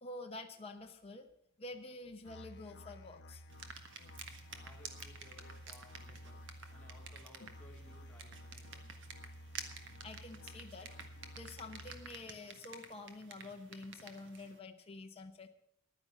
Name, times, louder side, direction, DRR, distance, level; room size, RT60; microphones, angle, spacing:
voice 1, 0.0-1.3 1.6-3.4 10.0-10.9 11.4-15.5, left 2 dB, 25° left, 3 dB, 0.8 m, -48 dB
Musical instrument, 2.2-12.2, equal, 50° left, 0.9 m, -53 dB
sound 1, 3.5-14.6, right 5 dB, 60° right, 1.5 m, -52 dB
voice 2, 4.5-6.4 6.7-8.9, left 1 dB, 5° left, -2 dB, 2.2 m, -61 dB
11.0 x 9.8 x 7.2 m, 0.70 s
head